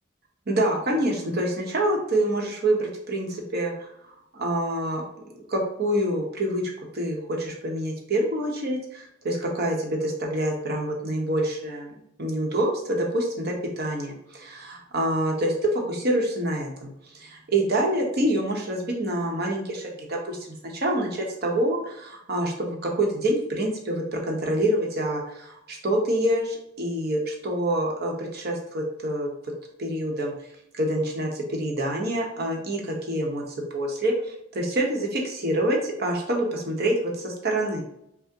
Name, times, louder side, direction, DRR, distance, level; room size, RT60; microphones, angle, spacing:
voice 1, 0.5-3.9 4.3-5.0 5.3-11.9 12.2-16.9 17.2-29.3 29.8-30.3 30.7-34.1 34.5-37.8, right 1 dB, 55° right, 0 dB, 0.9 m, -26 dB
5.8 x 2.1 x 2.8 m, 0.79 s
head